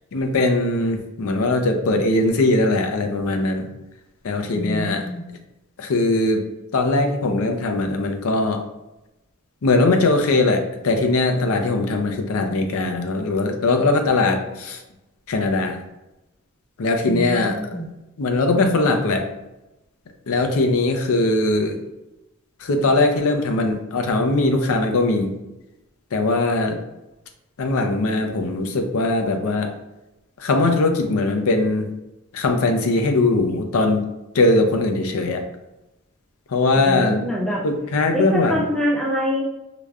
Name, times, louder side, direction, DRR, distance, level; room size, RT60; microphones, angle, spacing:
voice 1, 0.1-3.7 4.2-5.0 5.8-6.4 6.7-8.6 9.6-14.8 15.3-15.8 16.8-17.8 18.2-19.3 20.3-21.8 22.6-25.4 26.1-26.8 27.6-29.7 30.4-31.9 32.3-34.0 34.3-35.4 36.5-37.2 37.6-38.6, left 2 dB, 65° left, 5 dB, 0.5 m, -20 dB
voice 2, 4.5-5.2 17.0-17.8 36.7-37.6 38.1-39.4, equal, ahead, -5 dB, 0.8 m, -25 dB
4.8 x 2.1 x 2.4 m, 0.95 s
head